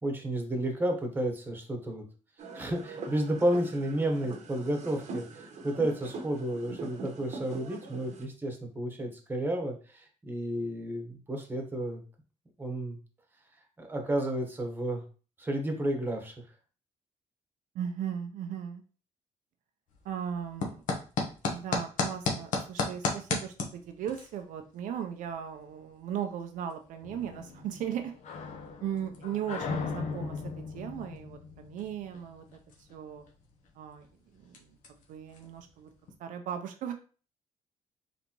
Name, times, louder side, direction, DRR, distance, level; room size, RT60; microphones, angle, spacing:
voice 1, 0.0-2.1 2.5-12.0 12.6-13.0 13.8-15.0 15.4-16.3, right 1 dB, 15° right, 3 dB, 1.0 m, -31 dB
sound 1, 2.4-8.2, right 3 dB, 60° right, 0.9 m, -43 dB
voice 2, 17.7-18.8 20.0-20.8 21.5-28.1 28.8-33.2 33.8-34.1 34.3-34.8 35.1-35.9 36.2-36.9, right 9 dB, 85° right, 6 dB, 0.6 m, -37 dB
sound 2, 19.9-36.2, left 4 dB, 80° left, 1.0 m, -39 dB
sound 3, 27.0-32.5, left 5 dB, 60° left, 0.7 m, -39 dB
4.0 x 3.4 x 2.9 m, 0.37 s
cardioid pair, 110°, 13 cm